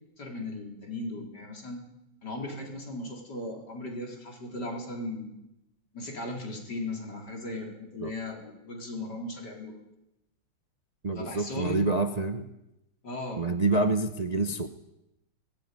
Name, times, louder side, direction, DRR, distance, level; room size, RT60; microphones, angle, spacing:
voice 1, 0.2-1.8 2.2-5.3 5.9-9.8 11.1-11.8 13.0-13.4, left 2 dB, 60° left, 1 dB, 4.6 m, -37 dB
voice 2, 11.0-12.5 13.4-14.7, right 3 dB, 40° right, 8 dB, 0.6 m, -27 dB
20.0 x 15.0 x 9.3 m, 0.89 s
omnidirectional pair, 2.1 m